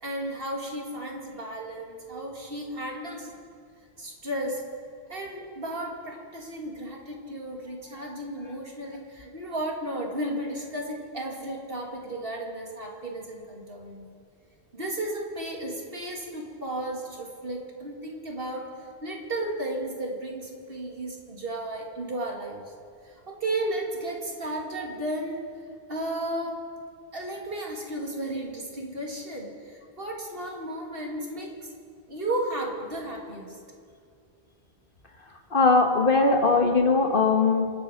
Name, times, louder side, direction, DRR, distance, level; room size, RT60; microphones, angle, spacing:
voice 1, 0.0-3.3 4.0-4.6 5.1-14.1 14.7-18.6 19.0-22.6 23.3-25.4 25.9-26.6 27.1-31.7 32.1-33.6, right 1 dB, 60° right, -1 dB, 2.7 m, -34 dB
voice 2, 35.5-37.7, left 3 dB, 55° left, 3 dB, 1.6 m, -20 dB
27.5 x 9.7 x 5.2 m, 2.3 s
omnidirectional pair, 1.1 m